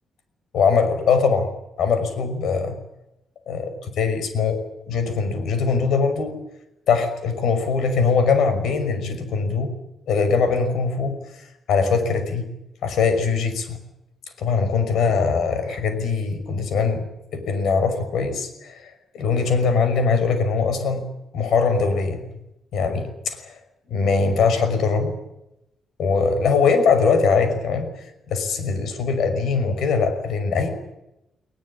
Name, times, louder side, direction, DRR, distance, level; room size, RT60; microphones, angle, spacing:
voice 1, 0.5-1.5 1.8-2.8 3.5-4.6 4.9-6.3 6.9-9.7 10.1-11.2 11.7-12.4 12.8-13.8 14.4-17.1 17.3-21.1 21.3-22.2 22.7-23.6 23.9-25.1 26.0-27.9 28.3-30.7, left 5 dB, 75° left, 9 dB, 5.7 m, -21 dB
20.5 x 20.5 x 9.9 m, 0.88 s
cardioid pair, 140°, 0 cm